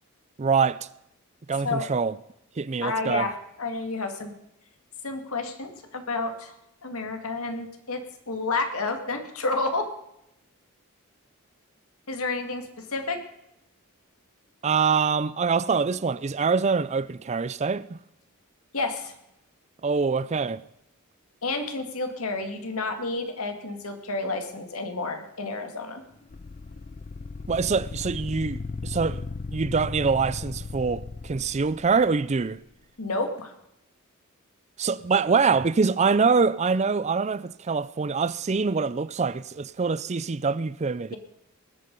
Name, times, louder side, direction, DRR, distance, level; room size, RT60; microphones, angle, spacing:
voice 1, 0.4-0.9 1.5-2.2 2.6-3.3 14.6-18.0 19.8-20.6 27.5-29.2 29.5-32.6 34.8-41.1, right 5 dB, 30° right, 0.4 m, -24 dB
voice 2, 2.8-4.3 5.0-6.5 6.8-9.9 12.1-13.2 18.7-19.1 21.4-26.0 33.0-33.5, left 3 dB, 75° left, 2.1 m, -30 dB
sound 1, 26.3-32.5, left 3 dB, 35° left, 0.4 m, -36 dB
20.0 x 8.6 x 5.3 m
head